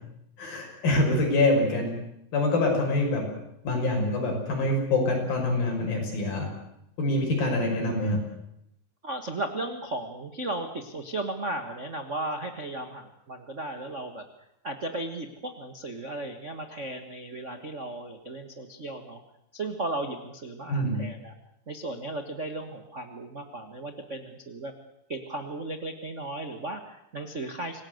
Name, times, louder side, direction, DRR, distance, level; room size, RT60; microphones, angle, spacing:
voice 1, 0.4-1.9 2.3-3.3 3.6-6.5 7.0-8.2 20.7-21.0, left 2 dB, 85° left, 1 dB, 7.7 m, -25 dB
voice 2, 9.0-14.2 14.6-19.2 19.5-21.3 21.7-24.7 25.1-27.8, right 2 dB, 50° right, 5 dB, 0.8 m, -35 dB
26.0 x 18.5 x 8.0 m, 0.79 s
omnidirectional pair, 4.0 m